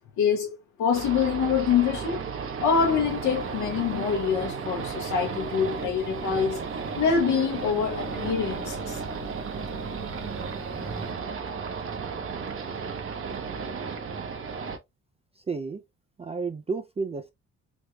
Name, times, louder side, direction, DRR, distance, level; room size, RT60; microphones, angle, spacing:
voice 1, 0.2-0.5 0.8-2.2 2.6-6.6 7.0-9.0, left 6 dB, 75° left, 0.8 m, -25 dB
sound 1, 0.9-14.8, right 5 dB, 45° right, 0.7 m, -34 dB
sound 2, 2.8-11.1, right 1 dB, ahead, 1.0 m, -45 dB
voice 2, 15.5-15.8 16.2-17.3, right 4 dB, 20° right, 0.3 m, -31 dB
3.5 x 3.0 x 2.2 m
cardioid pair, 90°, 30 cm